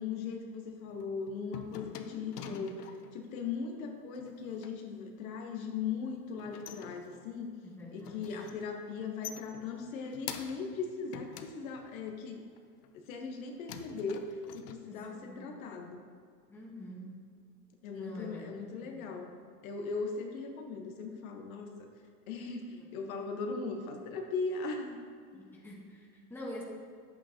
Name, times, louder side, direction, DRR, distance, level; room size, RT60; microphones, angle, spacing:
voice 1, 0.0-2.7 3.1-7.6 7.9-12.4 12.9-16.0 17.8-19.4 19.6-21.9 22.3-25.0 25.3-25.4, left 5 dB, 60° left, 3 dB, 1.4 m, -38 dB
sound 1, 0.9-3.2 4.1-4.8 6.1-7.5 7.8-8.7 9.0-10.8 11.1-12.2 12.8-13.4 13.7-14.7, left 9 dB, 75° left, 0.9 m, -47 dB
voice 2, 2.1-2.8 7.6-8.4 14.9-15.6 16.5-17.4 17.9-18.5 18.8-19.1 22.8-22.9 25.3-26.6, equal, 5° left, -3 dB, 1.3 m, -46 dB
10.0 x 8.4 x 2.9 m, 2.2 s
supercardioid pair, 135°, 46 cm